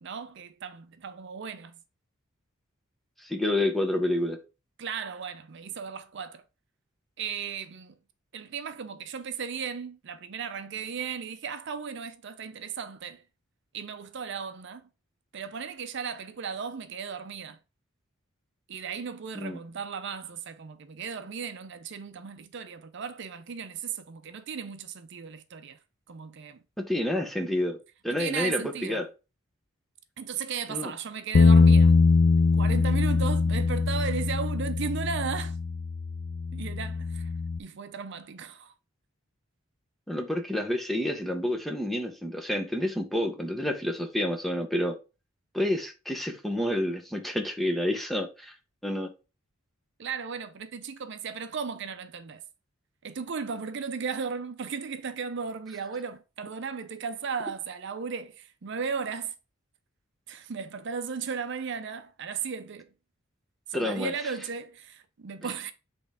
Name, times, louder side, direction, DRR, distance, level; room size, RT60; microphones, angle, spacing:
voice 1, 0.0-1.8 4.8-6.4 7.2-8.0 8.3-13.2 13.7-14.8 15.3-17.6 18.7-25.8 26.1-26.6 28.1-29.0 30.2-32.0 32.5-35.6 36.5-37.3 37.6-38.7 50.0-52.4 53.0-59.3 60.3-62.9 63.7-65.7, right 6 dB, 60° right, 0.5 m, -36 dB
voice 2, 3.2-4.4 19.3-19.6 26.8-27.8 28.0-29.0 30.7-30.9 40.1-44.9 45.5-48.5 48.8-49.1 63.7-64.1, left 1 dB, ahead, 0.8 m, -29 dB
Bass guitar, 31.3-37.6, left 4 dB, 50° left, 0.4 m, -22 dB
7.8 x 3.5 x 3.5 m
head